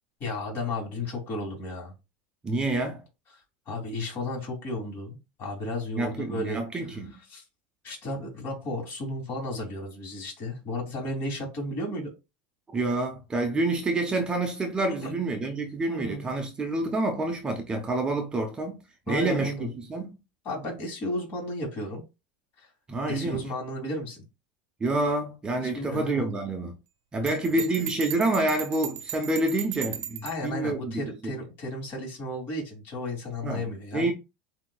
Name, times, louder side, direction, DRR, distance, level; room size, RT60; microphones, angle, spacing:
voice 1, 0.2-1.9 3.7-6.6 7.3-7.4 7.8-12.1 15.0-15.2 15.9-16.3 19.1-19.7 20.4-22.0 22.6-22.7 23.1-24.2 25.6-26.3 27.2-27.6 30.2-34.1, left 1 dB, 45° left, 2.8 m, -33 dB
voice 2, 2.4-3.0 6.0-7.1 12.7-18.8 19.1-20.2 22.9-23.5 24.8-26.7 27.1-31.4 33.4-34.1, right 2 dB, 15° right, 0.7 m, -28 dB
Bell, 27.3-30.4, right 11 dB, 45° right, 0.9 m, -37 dB
7.7 x 2.8 x 2.3 m
supercardioid pair, 130°, 5 cm